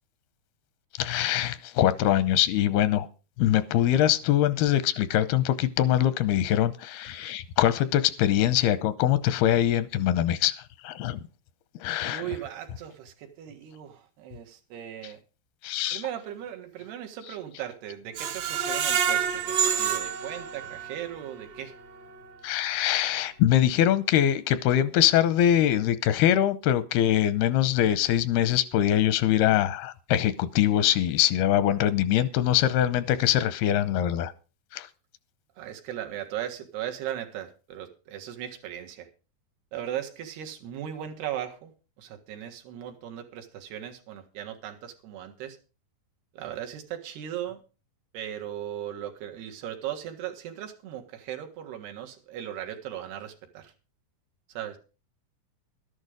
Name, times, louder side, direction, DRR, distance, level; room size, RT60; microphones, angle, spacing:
voice 1, 1.0-3.1 3.4-10.5 10.8-11.2 11.8-12.2 15.6-16.0 22.4-34.3 34.7-34.9, left 11 dB, 85° left, 2.7 m, -23 dB
voice 2, 12.1-15.2 15.9-21.7 35.6-39.1 39.7-41.7 42.0-45.6 46.3-47.6 48.1-53.7 54.5-54.8, right 11 dB, 85° right, 3.7 m, -37 dB
Screech, 18.2-21.1 21.6-21.7 22.1-22.2, right 7 dB, 65° right, 2.9 m, -27 dB
12.5 x 11.0 x 5.1 m
omnidirectional pair, 4.5 m